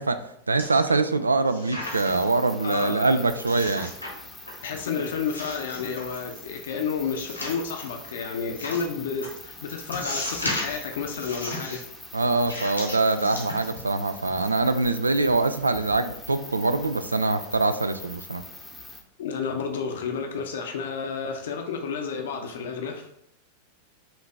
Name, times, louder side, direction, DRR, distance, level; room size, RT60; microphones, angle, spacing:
voice 1, 0.0-3.9 12.1-18.4, right 3 dB, 80° right, 11 dB, 0.3 m, -24 dB
sound 1, 0.6-1.1 1.5-2.3 2.7-2.8 3.5-4.1 4.4-4.9 5.3-6.4 7.2-7.9 8.6-8.8 9.2-9.3 9.9-10.8 11.2-11.8 12.4-13.9 14.3-14.5, left 1 dB, 90° left, 1.2 m, -35 dB
sound 2, 1.8-19.0, left 2 dB, 5° left, 0.7 m, -44 dB
voice 2, 2.6-3.2 4.6-11.9 19.2-23.0, left 5 dB, 60° left, 3 dB, 0.6 m, -31 dB
5.7 x 2.7 x 3.3 m, 0.73 s
figure-of-eight pair, 90°, 0 cm